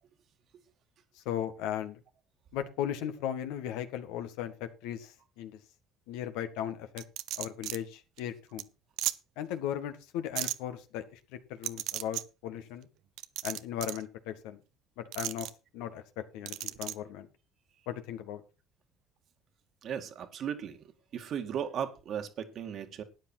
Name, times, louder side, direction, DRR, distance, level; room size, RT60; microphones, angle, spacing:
voice 1, 1.2-2.0 2.5-5.6 6.1-7.0 7.4-8.6 9.4-11.2 11.5-12.9 13.4-14.6 15.0-16.0 16.3-17.3 17.9-18.4, left 10 dB, 80° left, 1.8 m, -37 dB
sound 1, 7.0-7.8 8.2-8.3 8.6-8.7 9.0-9.1 10.3-10.5 11.6-12.2 13.2-14.0 15.1-15.5 16.4-16.9, right 16 dB, 75° right, 0.7 m, -34 dB
voice 2, 19.8-20.8 21.1-23.0, right 8 dB, 55° right, 2.1 m, -36 dB
13.0 x 9.6 x 4.5 m
hypercardioid pair, 65°, 0 cm